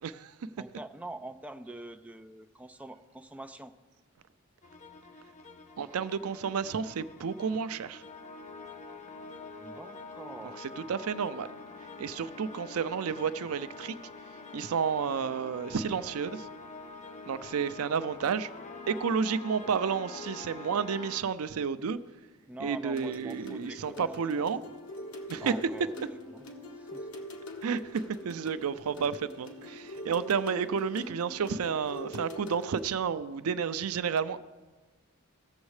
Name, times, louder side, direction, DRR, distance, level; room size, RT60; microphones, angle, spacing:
voice 1, 0.0-0.5 5.8-8.0 10.4-11.5 11.8-14.0 14.2-16.5 17.3-18.5 18.9-22.0 22.6-24.6 25.3-25.7 27.6-34.4, right 6 dB, 85° right, 0.4 m, -31 dB
voice 2, 0.6-3.7 9.6-10.7 22.5-24.1 24.4-24.7 25.4-26.1 26.3-26.4 26.7-27.1, right 1 dB, 5° right, 0.4 m, -44 dB
sound 1, 4.6-21.2, left 3 dB, 35° left, 0.6 m, -46 dB
sound 2, 22.9-32.9, left 1 dB, 75° left, 1.3 m, -44 dB
18.0 x 7.2 x 3.2 m
head